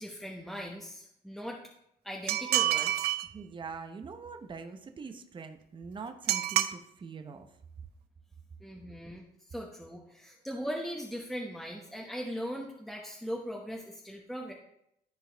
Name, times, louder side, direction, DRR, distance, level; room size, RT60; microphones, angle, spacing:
voice 1, 0.0-1.6 2.0-3.1 8.6-14.5, equal, ahead, -2 dB, 1.0 m, -39 dB
sound 1, 2.3-3.3 6.3-6.7, right 14 dB, 80° right, 0.5 m, -27 dB
voice 2, 3.3-7.5, right 5 dB, 30° right, 7 dB, 0.9 m, -43 dB
13.0 x 4.6 x 3.4 m, 0.77 s
cardioid pair, 115°, 17 cm